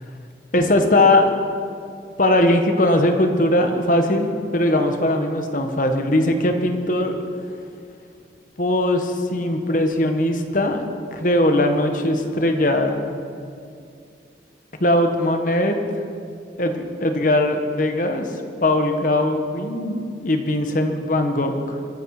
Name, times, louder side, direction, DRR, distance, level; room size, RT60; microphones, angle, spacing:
voice 1, 0.5-1.3 2.2-7.2 8.6-10.8 11.1-13.0 14.8-15.8 16.6-18.3 18.6-21.8, left 1 dB, 50° left, 5 dB, 1.4 m, -20 dB
23.5 x 11.0 x 4.9 m, 2.3 s
head